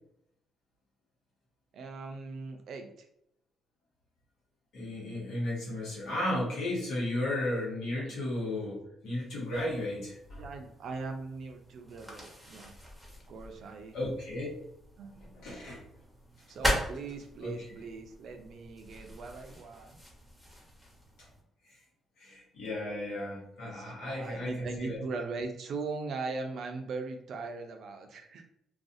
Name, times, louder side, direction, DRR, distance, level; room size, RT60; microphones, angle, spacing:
voice 1, 1.7-3.1 8.0-8.2 10.4-12.7 13.3-14.0 15.0-15.6 16.5-20.0 23.6-28.5, right 4 dB, 65° right, 5 dB, 0.4 m, -40 dB
voice 2, 4.7-10.4 13.9-14.5 15.3-15.8 17.4-17.6 22.2-25.0, left 1 dB, 85° left, -5 dB, 1.1 m, -34 dB
sound 1, 9.5-21.4, equal, ahead, 0.9 m, -40 dB
2.4 x 2.3 x 2.6 m, 0.76 s
cardioid pair, 90°, 0 cm